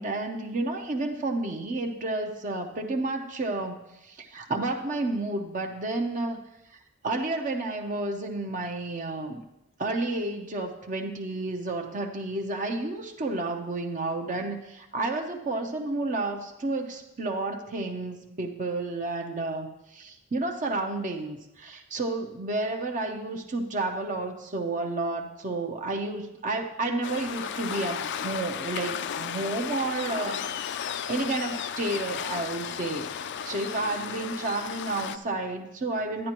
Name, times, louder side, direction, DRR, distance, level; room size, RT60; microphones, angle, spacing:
voice 1, 0.0-6.4 6.7-9.4 9.8-36.3, right 2 dB, 40° right, 3 dB, 0.7 m, -31 dB
Waves surf, 27.0-35.2, left 8 dB, 60° left, 0.4 m, -34 dB
10.5 x 9.6 x 3.0 m, 0.89 s
head